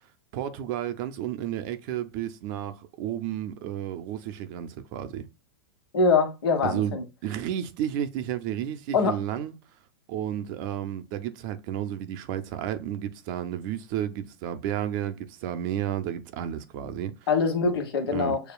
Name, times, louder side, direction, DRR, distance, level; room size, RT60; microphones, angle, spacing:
voice 1, 0.3-5.3 6.6-9.6 10.1-17.1 18.1-18.4, right 10 dB, 50° right, 0.7 m, -32 dB
voice 2, 5.9-7.0 8.9-9.2 17.3-18.4, left 4 dB, 75° left, 1.3 m, -23 dB
6.9 x 2.3 x 2.2 m
hypercardioid pair, 120°, 13 cm